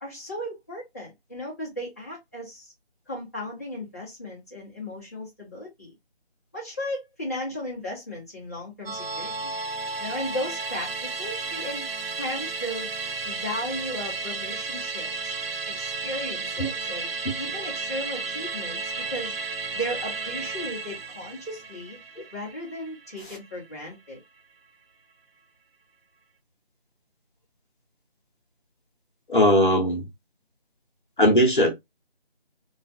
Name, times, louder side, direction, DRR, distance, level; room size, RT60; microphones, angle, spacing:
voice 1, 0.0-2.7 3.1-5.9 6.5-9.5 10.0-11.9 12.2-12.9 13.2-15.3 15.7-17.1 17.4-19.3 19.7-22.0 22.3-24.2, left 1 dB, 15° left, 0.9 m, -35 dB
Musical instrument, 8.9-23.5 23.9-24.0, right 4 dB, 65° right, 0.5 m, -33 dB
voice 2, 29.3-30.1 31.2-31.7, equal, 50° left, 1.0 m, -18 dB
3.1 x 2.4 x 2.5 m
figure-of-eight pair, 170°, 32 cm